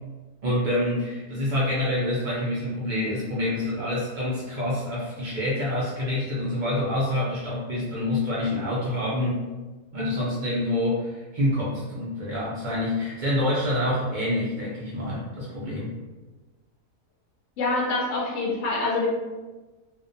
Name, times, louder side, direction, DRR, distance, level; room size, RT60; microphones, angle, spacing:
voice 1, 0.4-9.4 9.9-16.0, left 1 dB, 90° right, -6 dB, 0.4 m, -27 dB
voice 2, 17.6-19.1, left 2 dB, 70° left, -4 dB, 0.8 m, -25 dB
2.4 x 2.1 x 2.5 m, 1.2 s
omnidirectional pair, 1.5 m